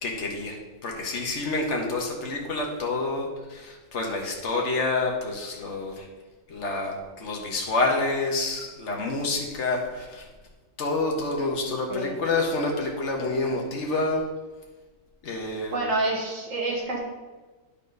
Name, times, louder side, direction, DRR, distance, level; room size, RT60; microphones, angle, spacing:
voice 1, 0.0-6.1 6.5-10.3 10.8-14.2 15.2-15.8, left 3 dB, 60° left, 0 dB, 1.6 m, -28 dB
voice 2, 15.7-17.0, right 2 dB, 80° right, -2 dB, 2.1 m, -27 dB
10.5 x 4.2 x 5.3 m, 1.3 s
omnidirectional pair, 1.3 m